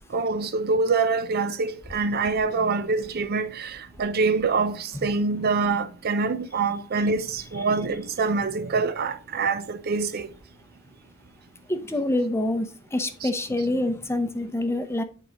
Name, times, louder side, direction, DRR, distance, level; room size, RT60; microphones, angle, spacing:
voice 1, 0.1-10.3 13.2-13.3, right 4 dB, 45° right, 0.5 m, -25 dB
voice 2, 11.7-15.0, left 1 dB, 10° left, 0.7 m, -26 dB
8.9 x 4.7 x 2.9 m
head